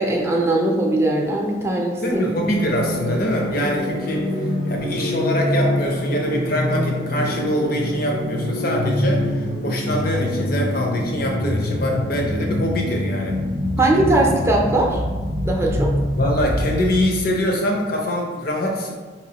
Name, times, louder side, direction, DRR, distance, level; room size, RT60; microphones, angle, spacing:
voice 1, 0.0-2.0 13.8-15.0 15.4-15.9, right 2 dB, 15° right, -1 dB, 0.6 m, -20 dB
voice 2, 2.0-13.4 16.2-18.9, equal, 55° left, 0 dB, 0.8 m, -24 dB
sound 1, 2.1-17.1, left 1 dB, 85° left, 1.2 m, -25 dB
4.8 x 3.0 x 2.9 m, 1.4 s
head